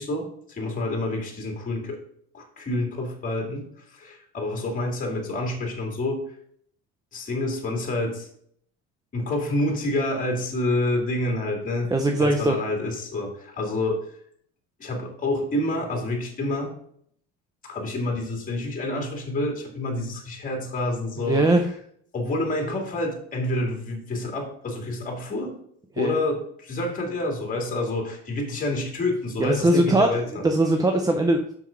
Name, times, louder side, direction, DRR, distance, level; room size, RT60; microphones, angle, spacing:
voice 1, 0.0-2.0 2.3-6.3 7.1-8.3 9.1-11.9 12.2-14.1 14.8-16.7 17.6-21.6 22.1-25.6 26.0-30.4, left 2 dB, 25° left, 2 dB, 2.2 m, -28 dB
voice 2, 11.9-12.6 21.2-21.6 26.0-26.2 29.4-31.5, right 2 dB, 10° right, 4 dB, 0.6 m, -21 dB
6.2 x 5.9 x 5.1 m, 0.64 s
cardioid pair, 130°, 35 cm